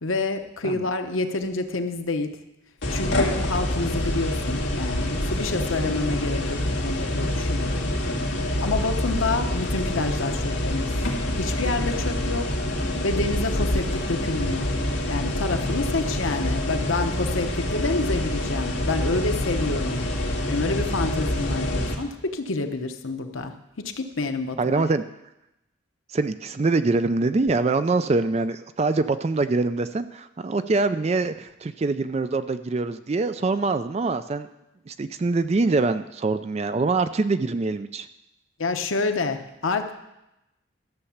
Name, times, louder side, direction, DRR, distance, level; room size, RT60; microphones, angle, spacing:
voice 1, 0.0-2.3 2.9-6.6 6.8-8.2 8.6-10.9 11.4-12.5 13.0-14.7 15.1-24.9 38.6-39.9, left 3 dB, 85° left, 6 dB, 1.0 m, -28 dB
sound 1, 2.8-22.0, left 1 dB, 65° left, 2.0 m, -26 dB
voice 2, 24.6-25.0 26.1-34.5 34.9-38.1, right 3 dB, 30° right, 11 dB, 0.4 m, -24 dB
13.0 x 6.9 x 7.1 m, 0.91 s
head